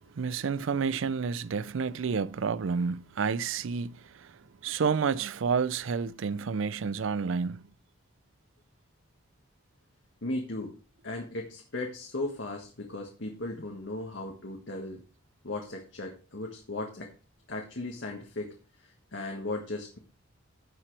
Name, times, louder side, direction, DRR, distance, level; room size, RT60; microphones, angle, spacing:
voice 1, 0.1-4.4 4.6-7.7, right 5 dB, 75° right, 0.5 m, -30 dB
voice 2, 10.2-10.8 11.0-15.0 15.4-17.1 17.5-18.6 18.8-20.0, left 2 dB, 65° left, 1.6 m, -36 dB
16.5 x 5.9 x 3.3 m
head